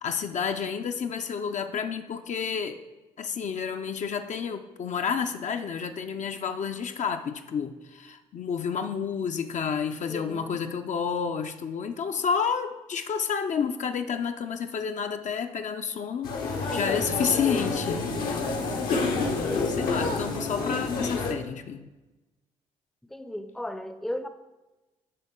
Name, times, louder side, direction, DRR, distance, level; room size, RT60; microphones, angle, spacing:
voice 1, 0.0-2.8 3.2-18.4 18.9-21.9, left 6 dB, 50° left, 6 dB, 0.5 m, -30 dB
voice 2, 10.1-10.6 16.5-17.0 19.4-20.0 23.0-24.3, left 1 dB, ahead, 9 dB, 0.5 m, -37 dB
sound 1, 16.2-21.3, left 3 dB, 70° left, 0.9 m, -28 dB
10.0 x 3.6 x 3.6 m, 1.1 s
hypercardioid pair, 45°, 16 cm